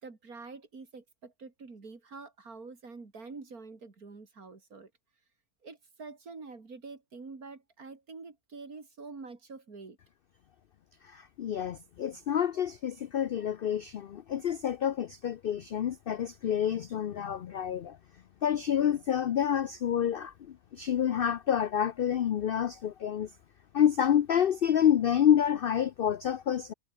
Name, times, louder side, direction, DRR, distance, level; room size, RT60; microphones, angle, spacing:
voice 1, 0.0-4.9 5.6-10.0, right 4 dB, 70° right, 3.6 m, -46 dB
voice 2, 11.1-18.0 18.4-20.3 20.7-23.3 23.7-26.7, left 9 dB, 80° left, 0.5 m, -28 dB
omnidirectional pair, 1.6 m